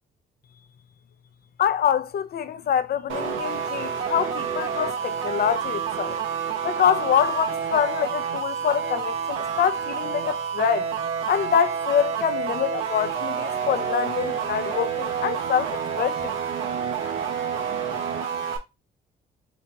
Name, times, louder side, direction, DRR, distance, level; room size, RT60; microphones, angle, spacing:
voice 1, 1.6-6.2 6.6-10.9 11.3-16.4, left 9 dB, 50° left, 0.5 m, -25 dB
sound 1, 3.1-18.6, right 7 dB, 80° right, 0.9 m, -28 dB
3.9 x 3.3 x 2.9 m
cardioid pair, 90°, 20 cm